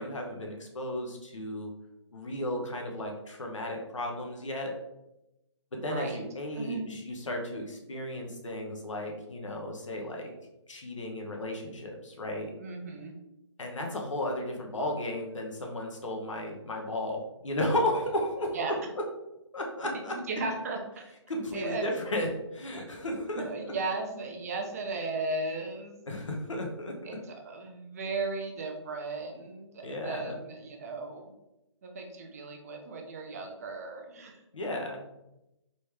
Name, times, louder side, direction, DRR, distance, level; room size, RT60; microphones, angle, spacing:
voice 1, 0.0-1.7 2.1-4.7 5.8-10.3 10.7-12.5 13.6-18.7 19.5-20.2 21.3-23.7 26.1-26.9 29.8-30.4 34.5-35.0, left 1 dB, 90° left, 1 dB, 1.2 m, -34 dB
voice 2, 5.8-6.2 6.5-6.9 12.6-13.1 18.5-18.7 19.8-21.1 21.5-21.9 23.4-26.0 27.0-31.3 31.8-34.4, right 3 dB, 30° right, 2 dB, 0.7 m, -36 dB
4.1 x 3.2 x 3.4 m, 0.92 s
hypercardioid pair, 165°, 15 cm